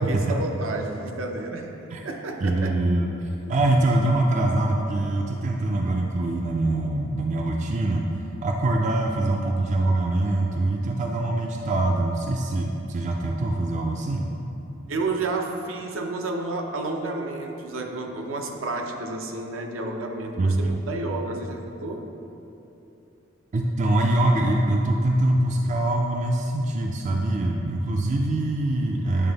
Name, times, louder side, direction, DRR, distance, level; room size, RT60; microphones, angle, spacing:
voice 1, 0.0-1.8 2.0-2.8 14.9-22.0, right 2 dB, 75° right, 3 dB, 0.6 m, -30 dB
voice 2, 2.4-3.1 3.5-14.2 20.4-20.7 23.5-29.3, right 2 dB, 35° right, 1 dB, 0.3 m, -23 dB
8.7 x 3.4 x 3.9 m, 3.0 s
head